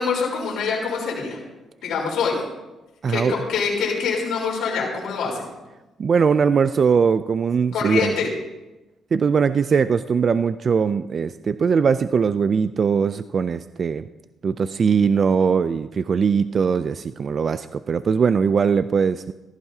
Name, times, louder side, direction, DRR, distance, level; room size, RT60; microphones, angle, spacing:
voice 1, 0.0-1.4 1.8-2.4 3.1-5.5 7.7-8.3, left 5 dB, 80° left, -4 dB, 4.0 m, -25 dB
voice 2, 3.0-3.4 6.0-8.1 9.1-14.0 14.4-19.3, right 6 dB, 45° right, 13 dB, 0.4 m, -20 dB
16.0 x 14.5 x 2.8 m, 1.0 s
cardioid pair, 90°, 0 cm